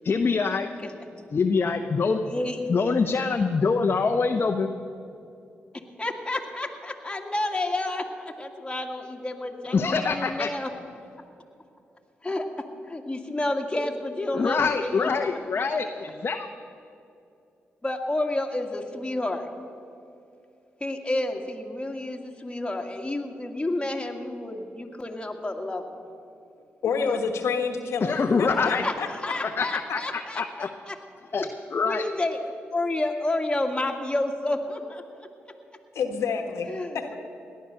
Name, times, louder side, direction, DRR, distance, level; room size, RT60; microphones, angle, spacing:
voice 1, 0.0-0.7 1.3-2.2 2.7-4.7 9.7-10.5 14.3-16.5 28.0-28.9 29.4-30.7 31.3-32.0, left 4 dB, 50° left, 5 dB, 0.9 m, -25 dB
voice 2, 2.3-2.6 6.0-10.7 12.2-15.1 17.8-19.5 20.8-26.0 26.9-27.2 28.8-31.0 31.4-31.5 31.8-32.4 32.7-35.3 36.7-37.2, left 2 dB, 20° left, 2 dB, 2.1 m, -30 dB
voice 3, 26.8-29.1 35.9-36.7, left 5 dB, 80° left, 6 dB, 1.3 m, -28 dB
17.5 x 11.0 x 6.7 m, 2.6 s
supercardioid pair, 50°, 5 cm